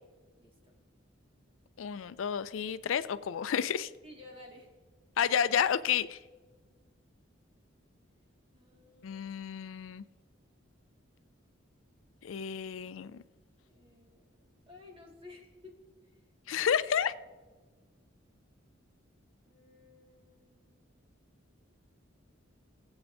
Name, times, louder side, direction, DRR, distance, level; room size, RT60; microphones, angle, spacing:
voice 1, 0.4-0.7 4.0-4.7 8.5-9.3 13.7-14.3 14.7-15.8 19.5-20.7, left 2 dB, 25° right, 0 dB, 1.9 m, -54 dB
voice 2, 1.8-3.9 5.2-6.2 9.0-10.0 12.2-13.2 16.5-17.1, left 8 dB, 75° left, 14 dB, 0.4 m, -31 dB
19.0 x 8.0 x 2.6 m, 1.3 s
head